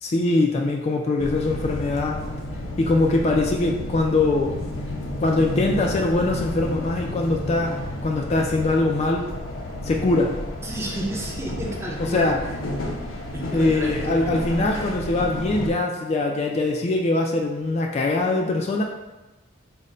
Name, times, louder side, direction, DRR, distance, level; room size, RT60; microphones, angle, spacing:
voice 1, 0.0-2.2 2.8-4.5 5.2-7.8 8.0-9.3 9.8-10.3 12.1-12.4 13.5-18.8, left 2 dB, 35° left, 1 dB, 0.3 m, -22 dB
sound 1, 1.2-15.7, left 1 dB, 75° left, 0.6 m, -31 dB
voice 2, 10.6-12.5 13.3-14.8, right 1 dB, 15° right, -3 dB, 0.6 m, -32 dB
3.8 x 2.1 x 4.2 m, 1.1 s
head